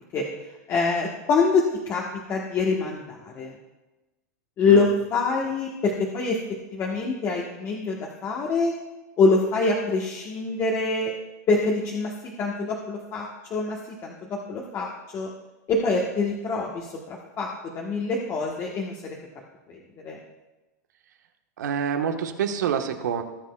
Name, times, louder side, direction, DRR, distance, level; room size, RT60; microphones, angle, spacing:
voice 1, 0.7-3.5 4.6-8.7 9.2-11.1 11.5-15.3 15.7-19.2 19.7-19.8 20.0-20.2, left 3 dB, 30° left, -1 dB, 1.2 m, -25 dB
voice 2, 21.6-23.2, right 8 dB, 80° right, 5 dB, 1.2 m, -27 dB
18.5 x 7.4 x 2.3 m, 1.1 s
hypercardioid pair, 130°, 9 cm